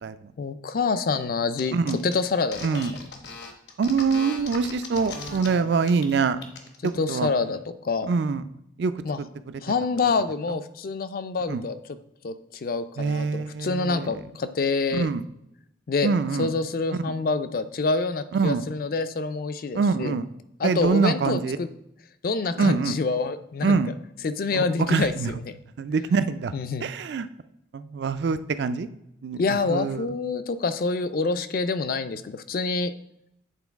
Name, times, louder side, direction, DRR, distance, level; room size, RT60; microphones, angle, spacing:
voice 1, 0.4-1.8 2.0-2.6 5.5-5.7 7.0-8.1 9.0-9.2 9.6-11.8 12.2-15.1 15.9-16.1 16.4-20.1 20.6-21.7 22.2-23.8 24.2-25.3 26.5-26.8 29.4-32.9, left 4 dB, 50° left, 11 dB, 0.4 m, -26 dB
sound 1, 1.6-1.7 1.9-5.5 5.8-6.1 6.4-6.9, left 4 dB, 70° left, 0.9 m, -38 dB
voice 2, 1.7-2.0 2.6-2.9 3.8-6.4 6.8-7.3 8.1-8.4 8.8-9.3 10.5-10.6 11.5-11.6 13.0-14.2 14.9-15.2 16.0-16.5 16.9-17.0 18.3-18.6 19.7-20.3 20.6-21.6 22.6-22.9 23.6-23.9 24.5-25.3 25.8-26.5 26.8-27.3 27.7-28.9 29.2-30.1, right 5 dB, 65° right, 12 dB, 0.4 m, -25 dB
8.2 x 3.8 x 3.5 m, 0.80 s
head